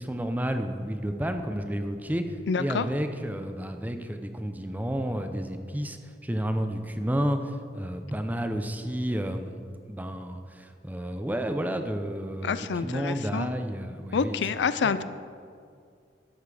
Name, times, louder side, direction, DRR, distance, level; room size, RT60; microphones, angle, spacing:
voice 1, 0.0-6.0 6.2-9.6 9.9-14.4 14.8-15.0, equal, 10° right, 7 dB, 0.6 m, -31 dB
voice 2, 2.5-2.9 12.4-13.5 14.1-15.0, left 5 dB, 75° left, 13 dB, 0.4 m, -27 dB
12.0 x 7.9 x 4.9 m, 2.3 s
head